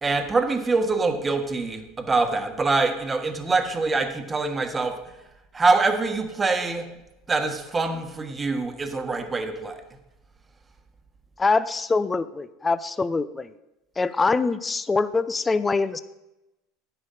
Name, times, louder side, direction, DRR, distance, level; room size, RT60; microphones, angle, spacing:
voice 1, 0.0-5.0 5.5-6.9 7.3-9.8, right 3 dB, 20° right, 6 dB, 1.4 m, -24 dB
voice 2, 11.4-13.5 14.0-16.0, left 4 dB, 20° left, 14 dB, 0.6 m, -24 dB
10.5 x 10.0 x 4.2 m, 0.96 s
supercardioid pair, 95°, 0 cm